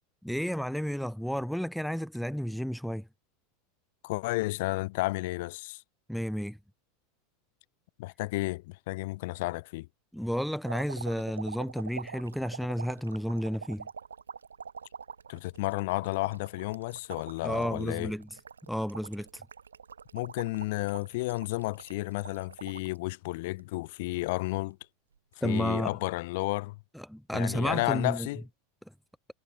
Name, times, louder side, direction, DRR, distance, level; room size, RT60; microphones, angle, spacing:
voice 1, 0.2-3.1 6.1-6.6 10.1-13.9 17.4-18.3 18.7-19.4 25.4-26.0 26.9-28.3, equal, ahead, 0.4 m, -32 dB
voice 2, 4.0-5.8 8.0-9.9 15.3-18.1 20.1-24.8 25.4-26.8 27.3-28.4, left 21 dB, 55° left, 0.8 m, -32 dB
sound 1, 10.6-23.0 23.4-24.2 25.2-25.3, right 6 dB, 75° right, 0.5 m, -45 dB
figure-of-eight pair, 85°, 0 cm